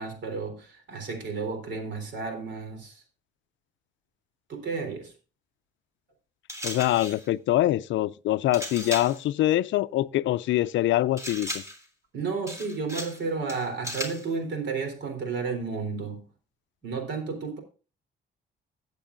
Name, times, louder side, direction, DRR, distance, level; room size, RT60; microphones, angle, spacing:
voice 1, 0.0-3.0 4.5-5.1 12.1-16.2 16.8-17.6, right 4 dB, 65° right, 3.7 m, -32 dB
sound 1, 6.5-7.3 8.5-9.2 11.2-11.9 12.5-13.2 13.5-14.3, equal, 15° right, 3.2 m, -36 dB
voice 2, 6.6-11.6, left 14 dB, 75° left, 0.4 m, -24 dB
15.5 x 8.2 x 2.6 m
cardioid pair, 90°, 20 cm